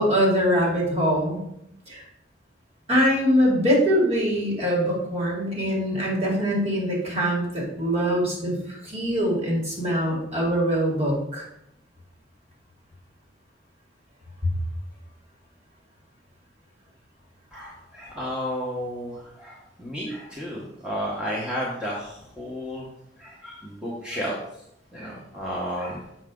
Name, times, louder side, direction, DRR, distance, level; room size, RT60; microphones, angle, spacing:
voice 1, 0.0-1.4 1.9-2.0 2.9-11.4, equal, 35° right, -3 dB, 2.6 m, -23 dB
voice 2, 17.5-22.9 23.2-24.4 24.9-26.0, equal, 5° right, -5 dB, 1.2 m, -32 dB
7.2 x 6.2 x 3.8 m, 0.78 s
head